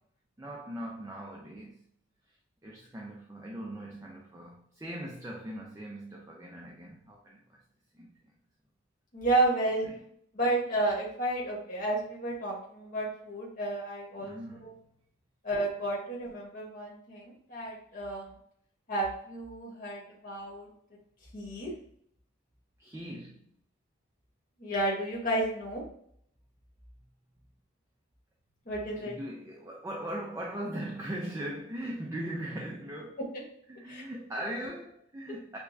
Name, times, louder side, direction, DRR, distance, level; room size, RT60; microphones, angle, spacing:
voice 1, 0.4-1.8 2.3-2.4 2.6-7.6 7.9-8.2 9.8-10.0 14.2-14.9 22.8-23.5 28.8-33.2 33.7-35.6, right 1 dB, 15° right, 0.5 m, -40 dB
voice 2, 9.1-9.9 10.3-14.3 14.6-14.7 15.4-18.3 18.9-20.7 21.3-21.7 24.6-25.8 28.7-29.1 33.9-34.0, right 2 dB, 45° left, 1.1 m, -31 dB
6.6 x 2.2 x 2.6 m
head